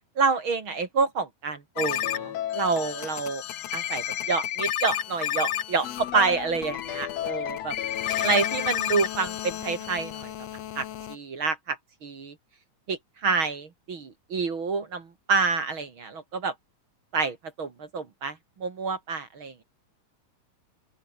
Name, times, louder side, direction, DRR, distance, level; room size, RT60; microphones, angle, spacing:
voice 1, 0.2-3.4 3.7-7.7 8.2-10.3 10.8-12.3 12.9-16.5 17.1-19.6, right 4 dB, 40° right, 2.5 m, -28 dB
sound 1, 1.8-11.2, left 11 dB, 60° left, 1.9 m, -31 dB
open air
omnidirectional pair, 4.2 m